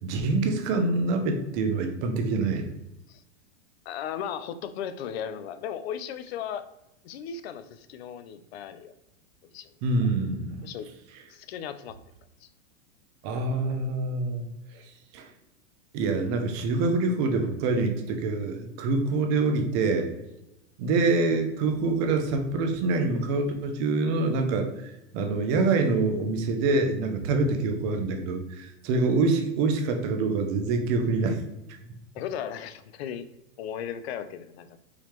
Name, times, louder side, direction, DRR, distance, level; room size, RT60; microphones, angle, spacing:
voice 1, 0.0-2.7 9.8-10.6 13.2-14.5 14.7-14.8 15.1-15.3 15.9-20.1 20.8-31.4, right 3 dB, 20° right, 5 dB, 0.3 m, -26 dB
voice 2, 3.9-6.6 7.0-8.9 9.4-9.8 10.6-10.9 11.3-12.0 12.4-12.5 32.1-33.3 33.6-34.8, left 8 dB, 50° left, 12 dB, 0.5 m, -36 dB
4.7 x 3.0 x 3.4 m, 0.90 s
hypercardioid pair, 140°, 39 cm